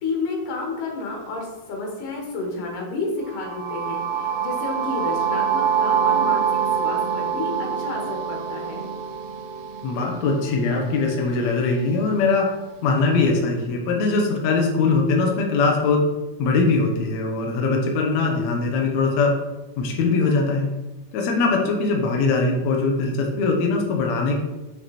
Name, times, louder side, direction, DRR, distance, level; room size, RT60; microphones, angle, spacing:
voice 1, 0.0-8.9, left 3 dB, 85° left, 0 dB, 3.0 m, -30 dB
sound 1, 3.2-11.2, right 7 dB, 70° right, 1.6 m, -25 dB
voice 2, 9.8-12.5 12.8-16.0 16.4-19.3 19.8-20.7 21.1-24.4, left 3 dB, 70° left, 0 dB, 2.1 m, -21 dB
6.1 x 5.7 x 4.2 m, 1.1 s
omnidirectional pair, 3.6 m